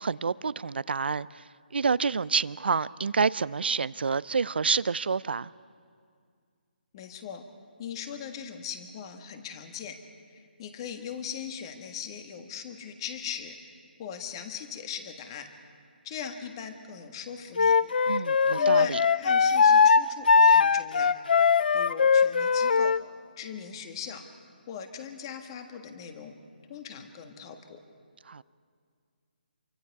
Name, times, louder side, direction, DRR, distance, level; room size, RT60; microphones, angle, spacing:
voice 1, 0.0-1.4 1.7-5.5 18.1-19.0 28.3-28.4, right 5 dB, 75° right, 0.5 m, -28 dB
voice 2, 6.9-7.4 7.8-10.0 10.3-13.6 14.0-15.5 16.0-17.8 18.6-21.1 21.5-23.0 23.4-24.2 24.7-26.3 26.7-27.8, left 8 dB, 25° left, 1.5 m, -40 dB
Wind instrument woodwind instrument, 17.6-23.0, left 5 dB, 65° left, 0.4 m, -20 dB
27.5 x 24.0 x 4.8 m
hypercardioid pair, 165°, 6 cm